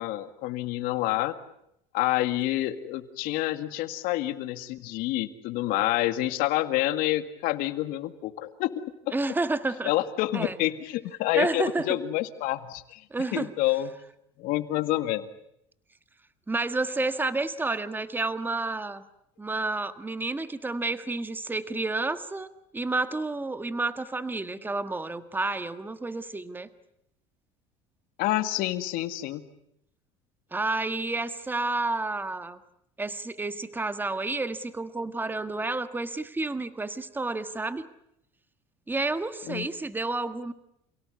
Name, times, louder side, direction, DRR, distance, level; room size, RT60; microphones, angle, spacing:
voice 1, 0.0-1.4 1.9-9.1 9.9-13.0 13.3-13.9 14.4-15.3 28.2-29.4 39.5-39.7, left 15 dB, 70° left, 11 dB, 2.0 m, -28 dB
voice 2, 9.1-9.9 10.3-10.6 11.3-12.0 13.1-13.5 16.5-19.0 19.4-26.7 30.5-32.6 33.0-37.9 38.9-40.5, right 3 dB, 15° right, 12 dB, 1.5 m, -30 dB
28.0 x 17.5 x 9.7 m, 0.79 s
supercardioid pair, 95°, 15 cm